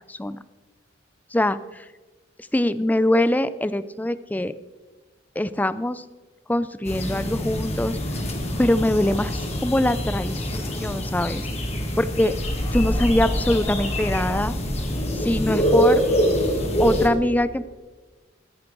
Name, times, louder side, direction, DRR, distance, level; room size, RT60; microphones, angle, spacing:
voice 1, 0.1-0.4 1.3-1.9 2.4-4.5 5.4-6.0 6.5-8.0 8.6-11.5 12.0-12.3 12.7-14.5 15.1-16.0 16.8-17.6, left 1 dB, 10° left, 14 dB, 0.4 m, -23 dB
sound 1, 6.9-17.1, equal, 35° left, 1.7 m, -25 dB
22.5 x 9.4 x 3.8 m, 1.3 s
head